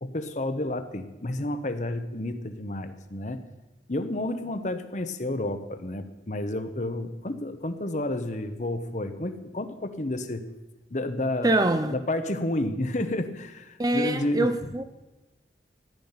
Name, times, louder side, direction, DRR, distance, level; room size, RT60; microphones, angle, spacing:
voice 1, 0.0-3.4 3.9-10.4 10.9-11.5 11.9-14.5, left 1 dB, 40° left, 9 dB, 0.9 m, -30 dB
voice 2, 11.4-11.9 13.8-14.8, right 2 dB, 20° right, 10 dB, 0.5 m, -24 dB
14.0 x 10.5 x 5.8 m, 1.1 s
head